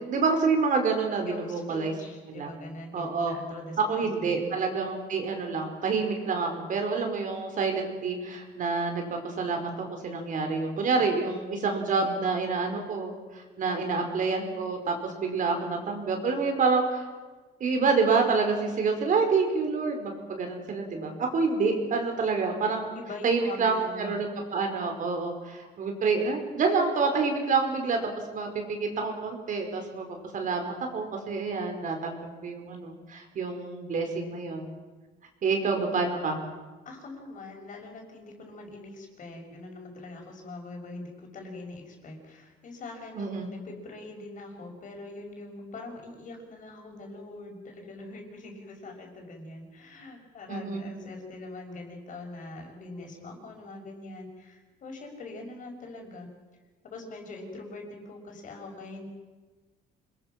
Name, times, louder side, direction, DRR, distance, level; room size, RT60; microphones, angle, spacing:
voice 1, 0.0-1.9 2.3-2.5 2.9-3.4 3.8-17.1 17.6-23.0 23.2-34.7 35.4-36.4 43.1-43.5 50.5-50.8, right 4 dB, 50° right, 4 dB, 4.9 m, -28 dB
voice 2, 1.2-4.4 13.6-14.0 22.9-24.2 36.8-56.3 56.8-59.1, left 2 dB, 50° left, 2 dB, 6.1 m, -43 dB
27.5 x 21.0 x 6.1 m, 1.3 s
cardioid pair, 110°, 17 cm